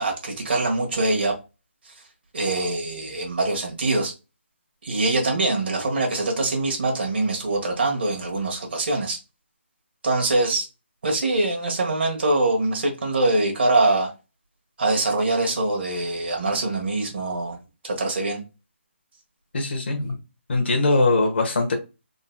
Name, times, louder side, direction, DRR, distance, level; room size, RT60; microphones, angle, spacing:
voice 1, 0.0-1.3 1.9-2.0 2.3-4.1 4.8-9.2 10.0-10.7 11.0-14.1 14.8-17.6 17.8-18.4, right 2 dB, 55° right, 1.3 m, -23 dB
voice 2, 19.5-20.2 20.5-21.7, left 2 dB, 60° left, 1.1 m, -21 dB
3.9 x 2.7 x 2.2 m
hypercardioid pair, 165°, 7 cm